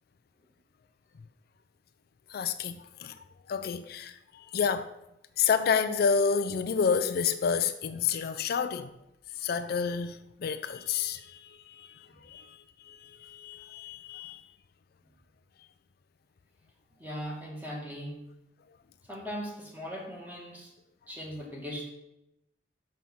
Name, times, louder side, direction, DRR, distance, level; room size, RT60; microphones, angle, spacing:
voice 1, 2.3-3.1 3.5-4.9 5.4-8.9 9.4-14.4, left 6 dB, 60° left, 0.4 m, -30 dB
voice 2, 17.0-18.3 19.1-20.7 21.1-21.9, equal, 10° right, 1.8 m, -39 dB
6.3 x 5.8 x 5.4 m
head